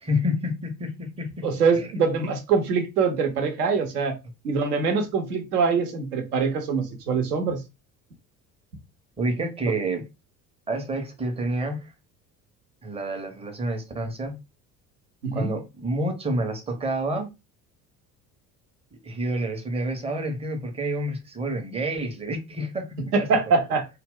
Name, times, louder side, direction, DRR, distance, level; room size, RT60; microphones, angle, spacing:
voice 1, 0.0-1.5 1.8-1.9 9.2-10.1 10.7-11.9 12.8-14.4 15.3-17.3 19.0-22.9 23.5-23.6, right 1 dB, 15° right, 0.6 m, -28 dB
voice 2, 1.4-4.2 4.4-7.6 15.2-15.5 23.1-23.9, right 5 dB, 75° right, 0.7 m, -23 dB
2.2 x 2.0 x 3.6 m
figure-of-eight pair, 60°, 47 cm